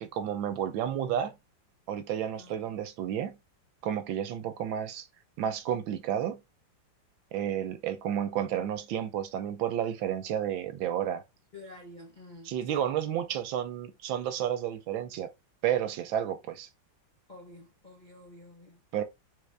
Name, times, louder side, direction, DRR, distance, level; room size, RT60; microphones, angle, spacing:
voice 1, 0.0-1.3 1.9-3.4 3.8-5.0 5.4-6.4 7.3-11.2 12.4-15.3 15.6-16.7 18.9-19.0, right 10 dB, 85° right, 1.5 m, -31 dB
voice 2, 2.3-2.8 11.5-12.8 17.3-18.8, left 2 dB, 40° left, 0.6 m, -50 dB
4.0 x 3.7 x 3.3 m
omnidirectional pair, 2.1 m